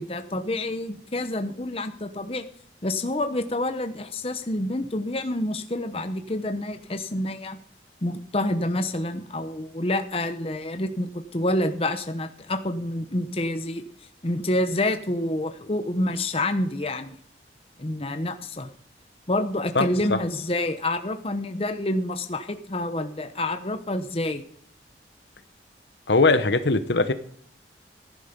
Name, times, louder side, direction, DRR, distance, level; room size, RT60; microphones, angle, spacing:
voice 1, 0.0-2.5 2.8-7.6 8.0-13.8 14.2-17.1 17.8-18.7 19.3-24.4, left 1 dB, 30° left, 7 dB, 1.0 m, -28 dB
voice 2, 26.1-27.1, left 3 dB, 75° left, 10 dB, 1.1 m, -20 dB
15.5 x 10.5 x 5.3 m, 0.62 s
head